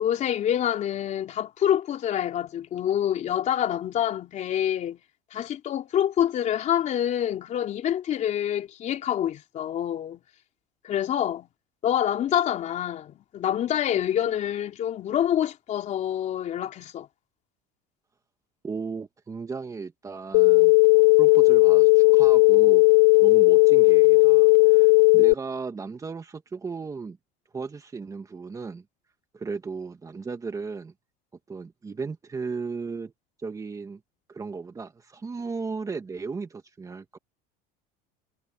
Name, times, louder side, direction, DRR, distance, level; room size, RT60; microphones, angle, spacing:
voice 1, 0.0-5.0 5.3-10.2 10.8-11.5 11.8-17.1, left 10 dB, 40° left, 3.8 m, -26 dB
voice 2, 18.6-20.8 21.2-22.9 23.2-27.2 27.5-28.8 29.3-30.9 31.5-33.1 33.4-34.0 34.3-37.2, right 4 dB, 15° right, 1.9 m, -35 dB
sound 1, 20.3-25.3, left 26 dB, 90° left, 0.4 m, -16 dB
cardioid pair, 140°, 19 cm